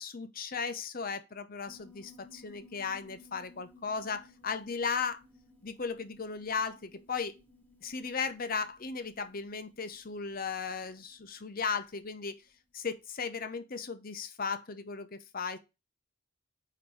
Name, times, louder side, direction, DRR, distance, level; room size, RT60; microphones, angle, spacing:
voice 1, 0.0-5.2 5.6-7.4 7.8-12.4 12.7-15.6, left 5 dB, 45° left, 0.8 m, -36 dB
Piano, 1.7-12.4, left 2 dB, 10° left, 1.7 m, -59 dB
5.2 x 4.0 x 4.6 m
head